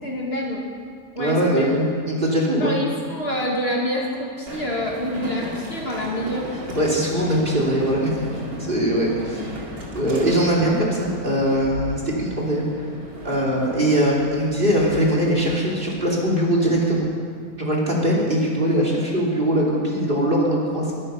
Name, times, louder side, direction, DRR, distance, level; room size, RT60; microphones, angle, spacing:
voice 1, 0.0-0.7 1.1-1.6 2.6-6.5, equal, 45° left, -2 dB, 2.3 m, -27 dB
voice 2, 1.2-2.7 6.7-9.4 9.9-12.6 13.2-17.1 17.6-20.9, equal, 35° right, -3 dB, 3.1 m, -21 dB
Train, 4.5-17.0, equal, 85° right, 2.7 m, -36 dB
22.5 x 11.0 x 5.6 m, 2.3 s
omnidirectional pair, 1.5 m